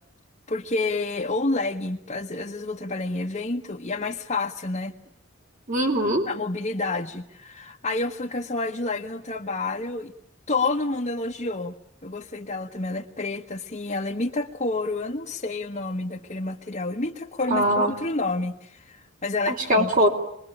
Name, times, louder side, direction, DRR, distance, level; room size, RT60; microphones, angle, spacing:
voice 1, 0.5-4.9 6.3-10.1 10.5-11.7 12.0-19.9, left 2 dB, 35° left, -1 dB, 1.3 m, -29 dB
voice 2, 5.7-6.2 17.5-17.9 19.5-20.1, equal, 45° right, 4 dB, 4.0 m, -21 dB
27.0 x 21.5 x 9.9 m, 0.76 s
head